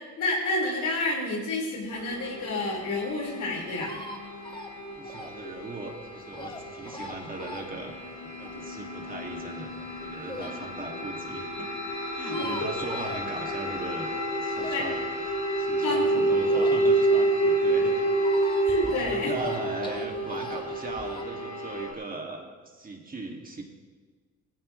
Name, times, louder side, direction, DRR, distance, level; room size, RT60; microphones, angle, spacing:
voice 1, 0.2-3.9 10.4-10.5 12.2-12.7 14.7-14.8 15.8-16.2 18.7-19.3, left 2 dB, 75° left, -2 dB, 5.3 m, -29 dB
sound 1, 2.0-21.9, right 2 dB, 50° left, 5.5 m, -29 dB
sound 2, 2.0-10.6 11.1-11.2 11.4-11.5 11.6-11.7 11.9-13.8 14.1-17.2 17.5-21.2, left 1 dB, 15° left, 1.7 m, -42 dB
voice 2, 5.0-7.9 8.4-11.7 12.1-15.1 15.6-18.0 18.8-23.6, right 2 dB, 30° right, 1 dB, 2.5 m, -39 dB
18.5 x 15.5 x 3.4 m, 1.4 s
cardioid pair, 90°, 30 cm